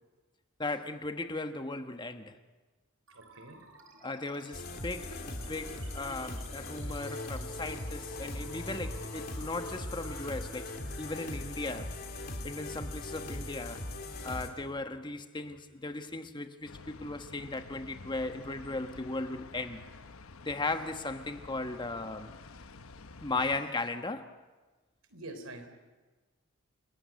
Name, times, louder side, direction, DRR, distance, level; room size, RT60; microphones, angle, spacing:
voice 1, 0.6-2.4 4.0-12.0 12.4-13.8 14.2-19.8 20.4-22.3 23.2-24.3, left 2 dB, 20° left, 1.2 m, -37 dB
sound 1, 3.1-14.0, right 2 dB, 65° right, 4.2 m, -55 dB
voice 2, 3.1-3.6 25.1-25.7, right 2 dB, 80° right, 3.9 m, -45 dB
sound 2, 4.5-14.5, left 2 dB, 45° left, 3.1 m, -40 dB
sound 3, 16.6-23.6, left 3 dB, 85° left, 1.0 m, -50 dB
29.5 x 19.5 x 9.4 m
head